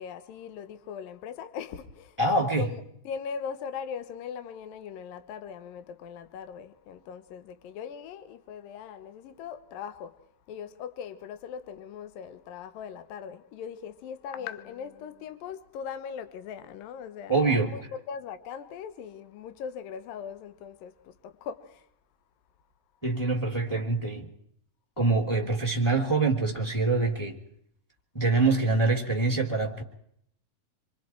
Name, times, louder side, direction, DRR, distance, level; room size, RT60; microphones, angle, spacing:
voice 1, 0.0-2.2 2.6-10.2 10.5-21.9, left 7 dB, 70° left, 2.7 m, -40 dB
voice 2, 2.2-2.6 17.3-17.7 23.0-24.3 25.0-27.3 28.1-29.8, right 3 dB, 5° left, 2.5 m, -25 dB
27.5 x 24.0 x 4.6 m
omnidirectional pair, 4.4 m